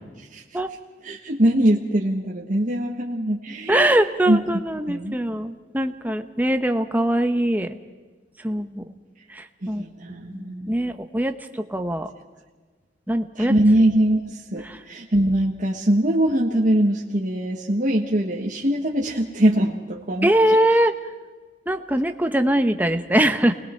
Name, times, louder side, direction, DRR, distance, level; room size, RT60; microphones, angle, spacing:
voice 1, 1.0-4.0 4.3-4.6 4.9-5.2 9.6-10.7 13.3-20.3, right 1 dB, 50° right, -3 dB, 1.5 m, -22 dB
voice 2, 3.7-7.8 8.4-8.8 9.3-9.8 10.1-12.1 13.1-13.5 14.6-14.8 20.2-20.9 21.7-23.5, right 1 dB, 10° right, 7 dB, 1.0 m, -22 dB
28.5 x 20.5 x 4.5 m, 1.4 s
head